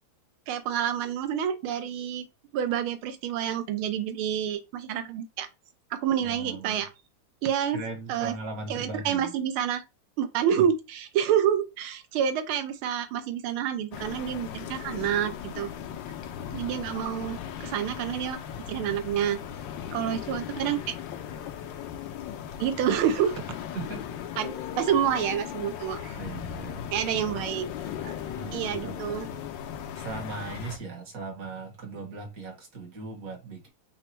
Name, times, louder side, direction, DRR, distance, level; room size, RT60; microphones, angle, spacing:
voice 1, 0.5-2.2 2.5-5.5 5.9-6.9 7.4-7.8 8.1-8.3 8.7-9.8 10.2-15.7 16.5-18.4 18.7-19.4 19.9-20.9 22.6-23.3 24.4-26.2 26.9-27.7 28.0-28.2 28.5-29.3, right 9 dB, 80° right, 1.5 m, -28 dB
voice 2, 6.2-6.8 7.7-9.3 10.6-10.7 23.7-24.2 26.2-26.9 28.3-29.4 30.0-33.7, right 3 dB, 50° right, 1.3 m, -38 dB
sound 1, 13.9-30.8, left 9 dB, 75° left, 1.2 m, -37 dB
4.0 x 2.2 x 4.3 m
omnidirectional pair, 2.3 m